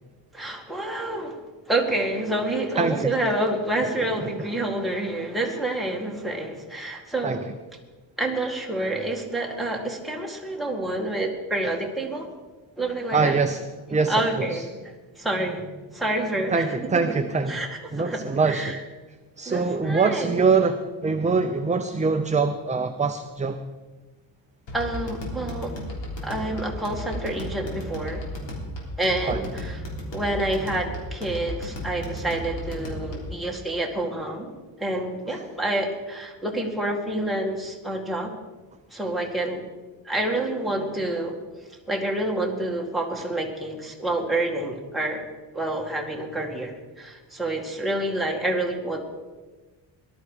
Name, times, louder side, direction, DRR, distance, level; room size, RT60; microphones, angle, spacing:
voice 1, 0.3-1.4 1.7-7.3 8.2-12.3 12.8-13.4 14.1-15.7 15.9-16.7 17.5-17.7 17.9-18.8 19.5-20.4 24.7-25.8 26.2-28.2 29.0-29.8 30.1-34.5 34.8-38.3 38.9-39.6 40.0-41.4 41.9-45.2 45.5-49.0, right 1 dB, ahead, -1 dB, 2.1 m, -28 dB
voice 2, 2.8-3.1 3.8-3.9 4.2-4.3 7.2-7.4 13.1-13.6 13.9-14.6 16.5-17.6 17.9-18.8 19.4-23.6 29.3-29.4 35.3-35.4, right 4 dB, 15° right, 7 dB, 0.5 m, -24 dB
sound 1, 24.7-33.4, left 1 dB, 70° left, 3.6 m, -34 dB
18.5 x 12.0 x 5.0 m, 1.3 s
wide cardioid pair, 160°, 46 cm